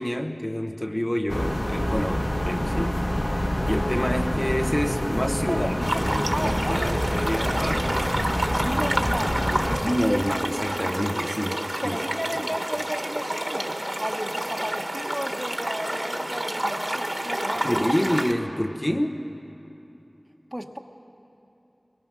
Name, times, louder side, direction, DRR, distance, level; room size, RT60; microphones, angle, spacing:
voice 1, 0.0-3.0 3.7-5.7 6.0-7.9 9.8-12.0 17.5-19.2, equal, 25° left, 3 dB, 1.0 m, -27 dB
sound 1, 1.3-9.8, equal, 45° left, 1.7 m, -26 dB
voice 2, 5.5-6.8 8.6-9.6 11.5-17.9 20.5-20.8, equal, 10° right, 5 dB, 1.1 m, -34 dB
sound 2, 5.8-18.3, right 1 dB, 30° right, 1.3 m, -29 dB
23.0 x 21.5 x 6.2 m, 2.9 s
wide cardioid pair, 45°, 0 cm